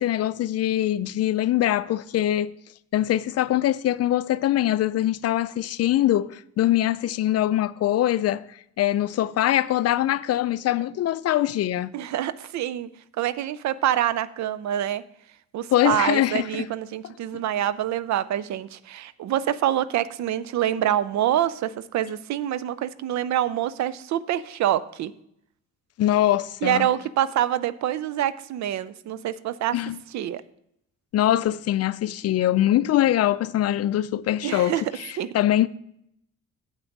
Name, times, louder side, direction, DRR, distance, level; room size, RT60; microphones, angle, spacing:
voice 1, 0.0-2.5 2.9-11.9 15.7-16.7 26.0-26.9 29.7-30.0 31.1-35.7, left 13 dB, 55° left, 0.4 m, -23 dB
voice 2, 11.9-12.9 13.2-15.0 15.5-25.1 26.6-29.8 30.1-30.4 34.4-34.8 35.2-35.3, right 11 dB, 65° right, 0.5 m, -26 dB
8.2 x 5.8 x 5.2 m
cardioid pair, 90°, 30 cm